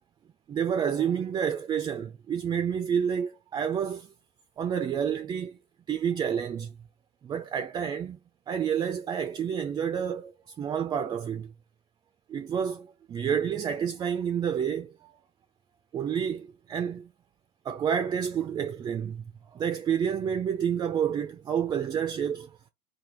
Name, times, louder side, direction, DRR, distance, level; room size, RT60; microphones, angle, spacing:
voice 1, 0.5-4.1 4.6-5.6 5.9-6.7 7.2-8.2 8.5-11.5 12.3-15.1 15.9-17.1 17.7-19.2 19.5-22.6, right 8 dB, 20° right, 0.4 m, -29 dB
3.3 x 2.2 x 4.3 m
supercardioid pair, 140°, 20 cm